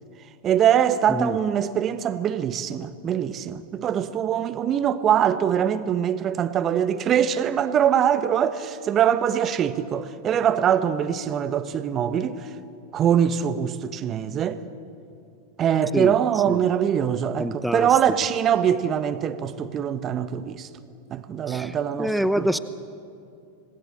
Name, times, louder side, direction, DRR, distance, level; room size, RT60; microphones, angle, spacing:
voice 1, 0.4-12.4 12.9-14.6 15.6-20.7 21.1-22.1 22.4-22.5, right 9 dB, 35° right, 1.2 m, -23 dB
voice 2, 15.9-16.6 17.4-17.9 21.5-22.6, equal, ahead, 0.8 m, -26 dB
26.5 x 19.5 x 7.6 m
hypercardioid pair, 95°, 0 cm